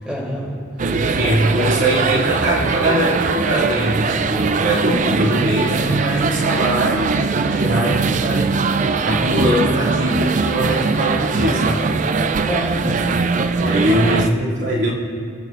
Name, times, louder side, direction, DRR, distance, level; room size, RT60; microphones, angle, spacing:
voice 1, 0.0-0.5 0.8-1.0 12.4-12.9 13.5-14.3, equal, 5° right, -5 dB, 3.1 m, -28 dB
sound 1, 0.8-14.3, right 4 dB, 40° right, 0.4 m, -20 dB
voice 2, 0.8-11.9 13.5-14.9, equal, 85° right, -6 dB, 2.6 m, -21 dB
25.0 x 8.6 x 2.5 m, 2.4 s
head